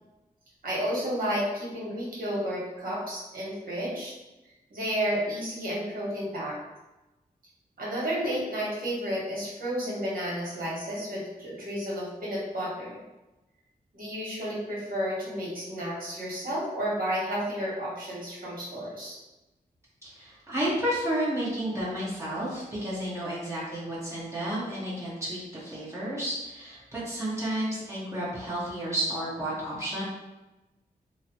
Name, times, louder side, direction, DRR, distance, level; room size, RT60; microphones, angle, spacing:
voice 1, 0.6-4.1 4.7-6.6 7.8-13.0 13.9-19.1, equal, 60° right, -6 dB, 1.2 m, -31 dB
voice 2, 20.0-30.0, right 1 dB, 15° right, -9 dB, 1.0 m, -31 dB
3.0 x 2.0 x 2.8 m, 1.1 s
cardioid pair, 65°, 16 cm